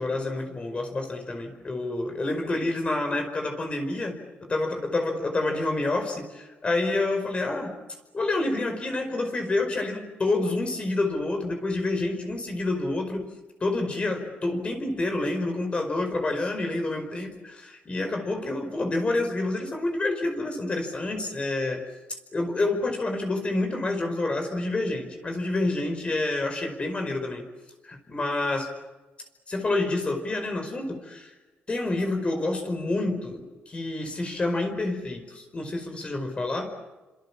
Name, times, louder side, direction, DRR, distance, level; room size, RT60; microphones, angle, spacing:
voice 1, 0.0-7.7 8.1-13.3 13.6-21.8 22.3-27.5 27.8-28.7 29.5-31.3 31.7-36.7, left 2 dB, 30° left, 5 dB, 5.0 m, -28 dB
29.0 x 26.5 x 7.3 m, 1.2 s
cardioid pair, 100°, 4 cm